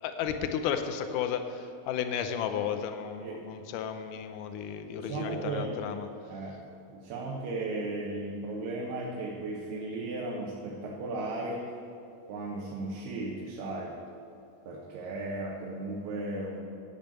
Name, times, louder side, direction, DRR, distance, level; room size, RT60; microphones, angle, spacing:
voice 1, 0.0-6.1, left 8 dB, 85° left, 8 dB, 1.8 m, -33 dB
voice 2, 5.0-6.0 6.3-11.7 12.3-14.0 14.7-16.6, right 2 dB, 90° right, -2 dB, 3.2 m, -36 dB
10.5 x 9.0 x 7.8 m, 2.6 s
omnidirectional pair, 4.5 m